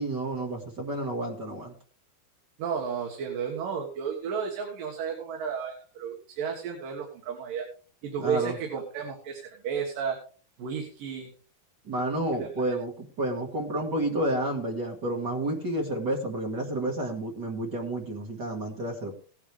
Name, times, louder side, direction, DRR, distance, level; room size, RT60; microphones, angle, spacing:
voice 1, 0.0-1.7 8.2-8.6 11.9-19.1, right 1 dB, 40° right, 1 dB, 1.6 m, -30 dB
voice 2, 2.6-7.7 8.0-10.2 10.6-11.3 12.3-12.8, right 7 dB, 65° right, 1 dB, 3.2 m, -33 dB
17.0 x 10.0 x 3.4 m, 0.40 s
omnidirectional pair, 4.3 m